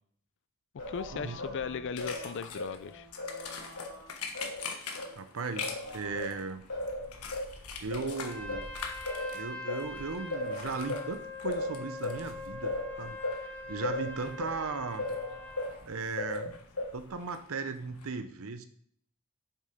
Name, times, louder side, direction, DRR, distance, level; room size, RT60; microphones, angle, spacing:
Singing, 0.8-5.1 5.6-15.8 16.2-17.2, left 2 dB, 90° left, 2.5 m, -38 dB
voice 1, 0.9-3.1, left 6 dB, 55° left, 13 dB, 0.4 m, -37 dB
sound 1, 2.0-18.1, left 5 dB, 75° left, 1.4 m, -46 dB
voice 2, 5.2-6.6 7.8-8.7 9.3-15.1 15.9-16.5 16.9-18.7, right 4 dB, 65° right, 10 dB, 0.7 m, -37 dB
Trumpet, 8.2-15.8, left 2 dB, 10° left, 1.2 m, -43 dB
7.3 x 7.0 x 5.1 m, 0.63 s
head